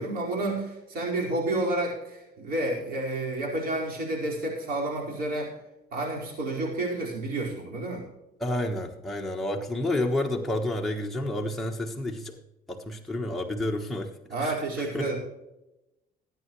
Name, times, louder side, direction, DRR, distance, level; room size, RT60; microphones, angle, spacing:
voice 1, 0.0-5.5 5.9-8.0 14.3-15.2, right 2 dB, 60° right, -2 dB, 5.0 m, -30 dB
voice 2, 8.4-12.3 12.7-14.1 14.4-15.1, left 1 dB, ahead, -1 dB, 1.3 m, -30 dB
20.0 x 9.3 x 3.2 m, 0.95 s
cardioid pair, 110°, 17 cm